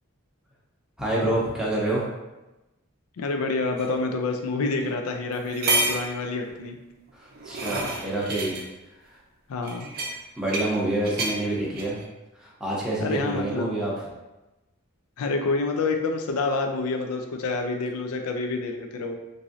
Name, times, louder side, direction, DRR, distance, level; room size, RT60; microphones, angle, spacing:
voice 1, 1.0-2.0 7.1-8.6 9.1-9.2 10.4-12.0 12.3-13.9, right 1 dB, 5° right, -6 dB, 0.6 m, -27 dB
voice 2, 3.2-6.8 9.5-9.9 13.0-13.6 15.2-19.2, left 3 dB, 85° left, 4 dB, 0.4 m, -28 dB
sound 1, 3.8-3.9 4.8-4.9 5.3-6.1 7.1-8.6 9.6-10.8 11.0-11.4 11.8-12.0, right 2 dB, 45° right, 0.5 m, -29 dB
3.0 x 2.6 x 2.5 m, 1.0 s
head